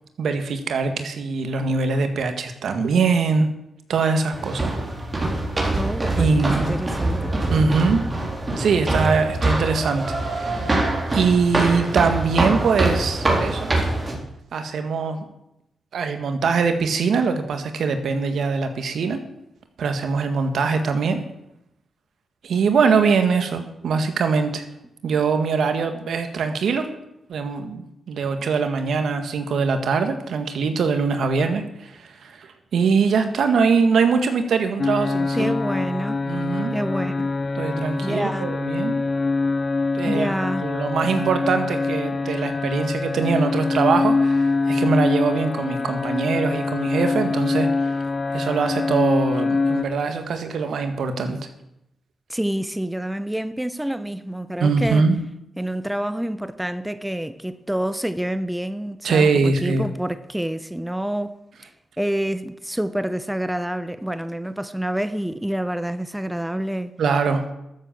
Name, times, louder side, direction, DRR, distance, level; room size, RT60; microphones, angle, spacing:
voice 1, 0.2-3.5 3.9-4.7 6.2-6.8 7.5-8.1 8.6-10.8 11.1-13.7 14.5-15.2 15.9-19.2 19.8-21.2 22.4-24.6 25.0-26.9 27.3-35.5 36.3-36.7 37.6-38.9 39.9-40.3 40.6-47.9 48.3-51.4 54.6-55.2 59.0-59.9 67.0-67.5, right 5 dB, 75° right, 1.8 m, -22 dB
sound 1, 4.3-14.1, right 2 dB, 30° right, 4.0 m, -24 dB
voice 2, 5.8-7.3 35.3-36.2 36.7-37.3 38.0-38.6 40.1-40.7 41.0-41.1 52.3-55.1 55.6-61.7 62.0-66.9, right 1 dB, 5° right, 0.8 m, -27 dB
sound 2, 34.8-49.8, left 3 dB, 40° left, 0.7 m, -24 dB
13.0 x 7.9 x 7.4 m
cardioid pair, 70°, 0 cm